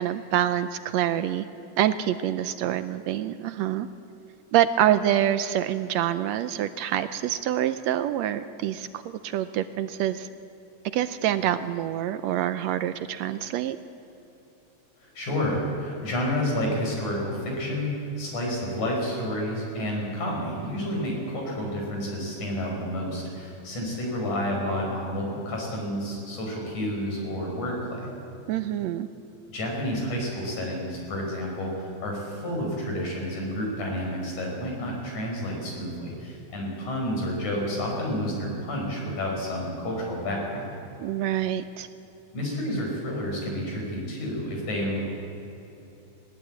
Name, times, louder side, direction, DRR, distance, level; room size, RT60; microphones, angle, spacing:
voice 1, 0.0-1.5 1.8-3.9 4.5-10.3 10.9-13.8 28.5-29.1 41.0-41.9, right 11 dB, 75° right, 11 dB, 1.7 m, -26 dB
voice 2, 15.0-28.1 29.5-40.8 42.3-45.0, equal, 80° left, -1 dB, 6.5 m, -30 dB
19.5 x 18.0 x 8.8 m, 2.9 s
omnidirectional pair, 3.4 m